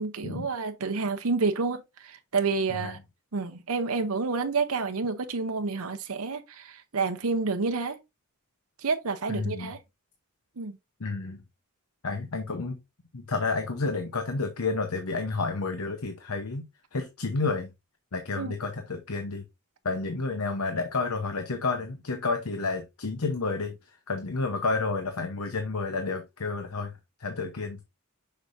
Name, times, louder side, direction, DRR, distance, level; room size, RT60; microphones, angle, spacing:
voice 1, 0.0-3.0 3.3-8.0 8.8-9.8 10.6-10.8 18.4-18.5, right 4 dB, 85° right, 0.8 m, -29 dB
voice 2, 9.3-9.7 11.0-11.4 12.0-12.8 13.1-16.7 16.9-17.7 18.1-19.4 19.8-23.8 24.1-26.9 27.2-27.8, left 3 dB, 85° left, 1.0 m, -30 dB
6.8 x 5.9 x 2.6 m
head